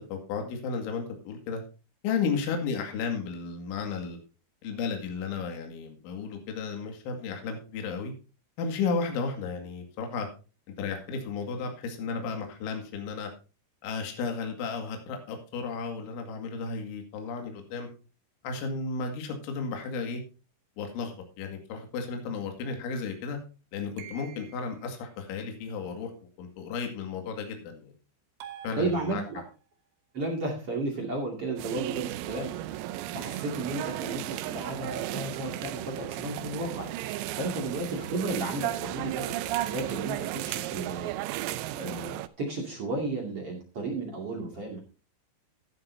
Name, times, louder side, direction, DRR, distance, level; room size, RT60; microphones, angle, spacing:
voice 1, 0.0-1.6 2.0-4.2 4.6-8.1 8.6-10.3 10.8-13.3 13.8-17.9 18.4-20.2 20.8-23.4 23.7-26.1 26.4-27.9 28.6-29.2, left 5 dB, 70° left, 4 dB, 4.3 m, -33 dB
sound 1, 24.0-24.9 28.4-29.6, right 9 dB, 75° right, 3.8 m, -47 dB
voice 2, 28.8-29.4 30.1-41.1 41.5-44.8, right 2 dB, 40° right, 0 dB, 2.3 m, -34 dB
sound 2, 31.6-42.3, right 15 dB, 90° right, 3.4 m, -34 dB
14.0 x 11.0 x 2.8 m, 0.33 s
omnidirectional pair, 5.9 m